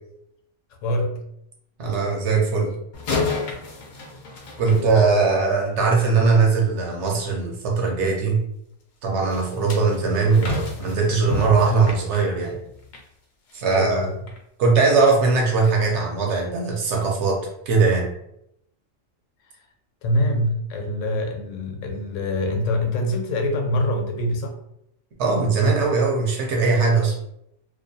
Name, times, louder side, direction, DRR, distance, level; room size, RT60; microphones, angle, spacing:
voice 1, 0.8-1.2 4.7-4.9 13.7-14.2 20.0-24.6, left 1 dB, 80° left, 3 dB, 0.9 m, -24 dB
voice 2, 1.8-2.8 4.6-8.4 9.0-12.6 13.5-14.1 14.6-17.4 17.7-18.1 25.2-27.2, right 4 dB, 70° right, 0 dB, 0.9 m, -20 dB
sound 1, 2.9-5.5 9.3-13.1 13.5-13.7 14.3-14.4, left 3 dB, 60° left, 0.5 m, -31 dB
2.4 x 2.2 x 2.6 m, 0.77 s
omnidirectional pair, 1.3 m